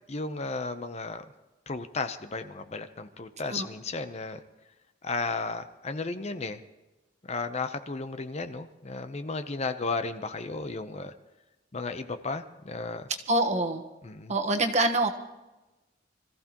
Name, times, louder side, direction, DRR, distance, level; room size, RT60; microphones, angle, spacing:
voice 1, 0.1-1.2 1.7-4.4 5.0-6.6 7.2-11.1 11.7-13.1 14.0-14.3, left 3 dB, 35° left, 9 dB, 0.7 m, -34 dB
voice 2, 13.3-13.8 14.3-15.1, right 2 dB, 40° right, 5 dB, 1.2 m, -25 dB
25.5 x 15.0 x 3.0 m, 1.1 s
head